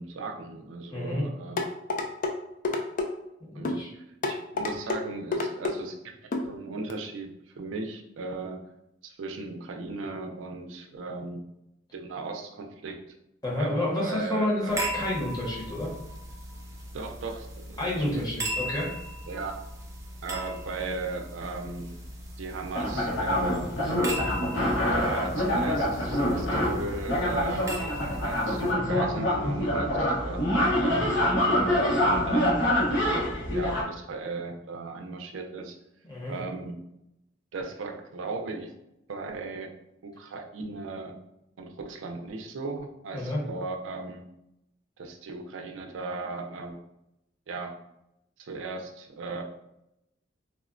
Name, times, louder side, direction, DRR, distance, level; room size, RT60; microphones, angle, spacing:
voice 1, 0.0-1.6 3.5-8.6 9.0-11.4 11.9-13.0 13.6-13.7 14.0-14.9 16.9-18.2 19.3-19.6 20.2-21.9 22.4-23.7 24.9-31.1 31.6-33.3 33.5-35.8 36.3-36.7 37.5-38.7 39.1-39.7 40.0-41.2 41.6-44.2 45.0-46.7 47.5-47.7 48.4-49.4, right 3 dB, 80° right, 3 dB, 0.4 m, -37 dB
voice 2, 0.9-1.2 3.5-3.9 13.4-15.9 17.8-18.9 28.7-29.0 30.8-31.1 36.0-36.3 43.1-43.4, left 1 dB, 20° left, -4 dB, 0.8 m, -30 dB
sound 1, 1.6-2.3 2.6-3.1 3.6-3.8 4.2-5.0 5.3-5.8 6.3-6.5 6.9-7.0, left 3 dB, 45° left, 0.3 m, -28 dB
sound 2, 14.7-28.7, right 1 dB, 15° right, 0.5 m, -38 dB
sound 3, 22.7-33.8, left 1 dB, 85° left, 0.9 m, -26 dB
3.5 x 2.0 x 2.5 m, 0.84 s
head